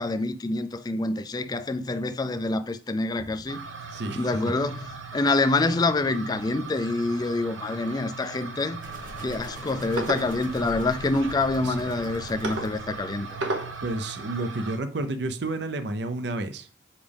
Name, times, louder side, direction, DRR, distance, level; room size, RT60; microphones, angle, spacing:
voice 1, 0.0-3.6 4.2-8.8 9.2-13.3, left 2 dB, 20° left, 0.3 m, -26 dB
Bowed string instrument, 3.2-9.5, equal, 60° left, 1.0 m, -56 dB
sound 1, 3.5-14.8, right 3 dB, 85° right, 1.0 m, -37 dB
voice 2, 3.9-4.3 11.6-11.9 13.8-16.7, right 2 dB, 60° right, 0.6 m, -31 dB
sound 2, 8.8-13.7, equal, 45° right, 1.5 m, -43 dB
7.3 x 4.9 x 3.4 m
head